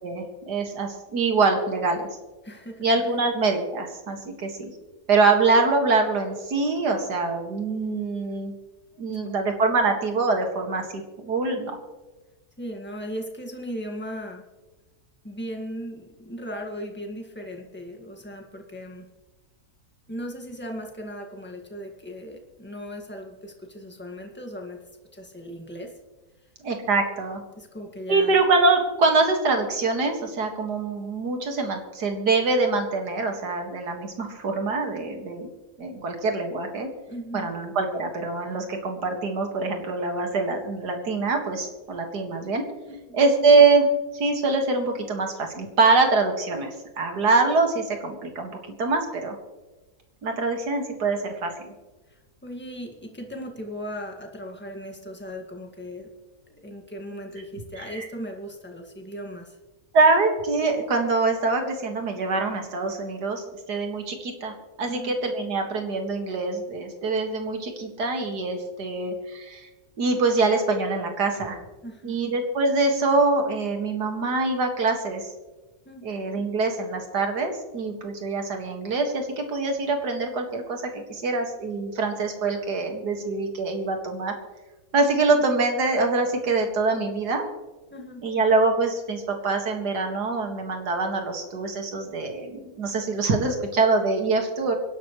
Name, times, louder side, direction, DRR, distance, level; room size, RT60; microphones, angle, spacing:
voice 1, 0.0-2.1 2.8-4.7 5.1-8.5 9.0-11.8 26.6-27.4 28.1-35.5 35.8-36.9 37.3-42.6 43.1-43.9 44.1-48.5 48.8-49.4 50.2-51.5 57.8-58.1 59.9-63.4 63.7-69.7 70.0-71.6 72.0-75.3 76.0-84.3 84.9-87.4 88.2-94.8, right 3 dB, 85° right, 3 dB, 2.5 m, -24 dB
voice 2, 2.4-3.2 8.9-9.3 12.6-14.4 15.2-19.1 20.1-24.8 25.1-25.9 27.6-28.4 37.1-37.5 42.9-43.0 52.1-56.1 56.5-59.5 64.8-65.2 71.8-72.2 75.8-76.1 85.1-85.4 87.9-88.3, equal, 5° left, 2 dB, 1.7 m, -37 dB
24.5 x 11.5 x 3.1 m, 1.2 s
omnidirectional pair, 1.7 m